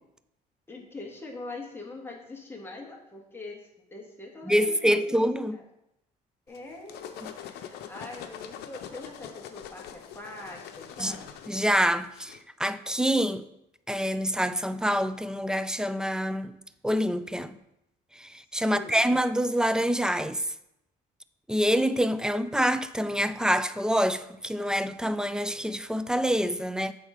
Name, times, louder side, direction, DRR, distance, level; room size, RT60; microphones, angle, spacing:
voice 1, 0.7-5.6 6.5-11.3 18.6-19.0, left 2 dB, 15° left, 1.5 m, -43 dB
voice 2, 4.5-5.6 11.0-11.2 11.5-13.4 13.9-16.5 16.8-17.6 18.2-20.4 21.5-26.9, equal, 5° right, 0.3 m, -26 dB
sound 1, 6.5-12.4, left 9 dB, 80° left, 0.7 m, -44 dB
7.9 x 3.9 x 5.0 m
cardioid pair, 110°, 17 cm